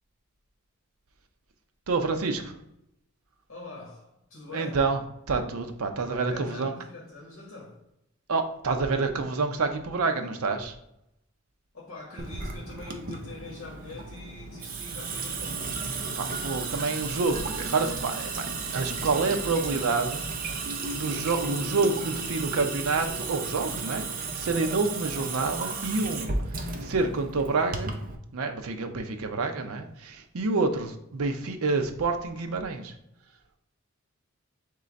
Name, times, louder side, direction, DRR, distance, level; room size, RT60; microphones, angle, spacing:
voice 1, 1.9-2.5 4.5-5.0 5.3-6.7 8.3-10.7 16.2-18.5 18.7-20.2 20.9-27.9 28.3-32.9, right 3 dB, 85° right, 6 dB, 0.5 m, -28 dB
voice 2, 3.5-4.8 6.1-7.8 11.7-15.7, left 3 dB, 65° left, -3 dB, 1.1 m, -44 dB
Water tap faucet / Sink (filling or washing) / Drip, 12.2-28.2, right 4 dB, 40° right, 0.5 m, -34 dB
3.8 x 3.3 x 4.0 m, 0.81 s
head